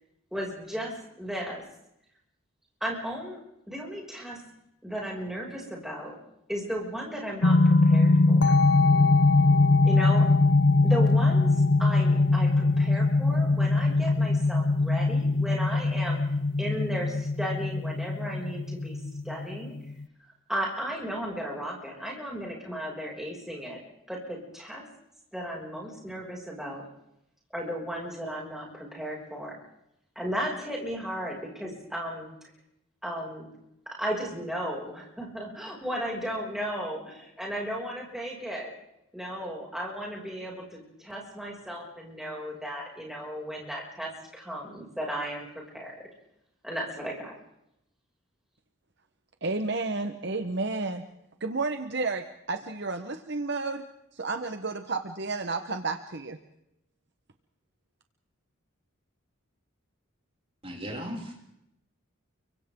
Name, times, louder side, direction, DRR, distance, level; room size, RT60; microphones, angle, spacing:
voice 1, 0.3-1.6 2.8-3.4 3.7-4.4 4.8-6.2 6.5-8.6 9.1-9.2 9.8-10.3 10.8-16.2 16.6-19.0 19.2-19.7 20.5-23.8 24.1-24.8 25.3-26.9 27.5-29.6 30.1-32.3 33.0-33.5 33.9-38.7 39.1-45.5 45.7-46.1 46.6-47.4, equal, ahead, -3 dB, 6.3 m, -35 dB
sound 1, 7.4-20.0, left 3 dB, 55° left, 0.8 m, -22 dB
voice 2, 49.4-51.0 51.4-53.8 54.1-56.4, right 3 dB, 55° right, 7 dB, 1.1 m, -31 dB
voice 3, 60.6-61.3, equal, 25° right, -2 dB, 6.3 m, -36 dB
30.0 x 24.5 x 3.8 m, 0.80 s
head